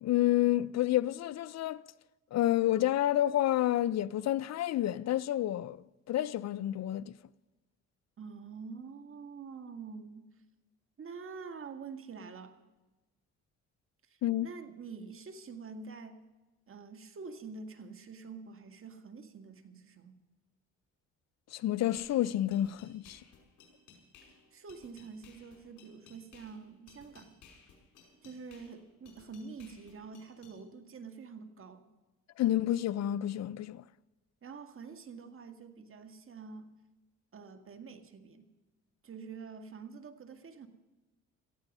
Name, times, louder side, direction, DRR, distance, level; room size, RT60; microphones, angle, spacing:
voice 1, 0.0-1.8 2.3-5.8 6.1-7.1 14.2-14.5 21.5-23.2 32.4-33.8, left 13 dB, 60° left, 0.5 m, -29 dB
voice 2, 8.2-10.3 11.0-12.6 14.0-16.2 16.7-20.1 24.5-27.3 28.2-31.9 34.4-36.7 37.3-38.5 39.0-40.7, right 5 dB, 45° right, 1.9 m, -46 dB
sound 1, 22.0-30.6, left 5 dB, 80° left, 5.2 m, -59 dB
18.0 x 14.0 x 5.4 m
cardioid pair, 90°, 30 cm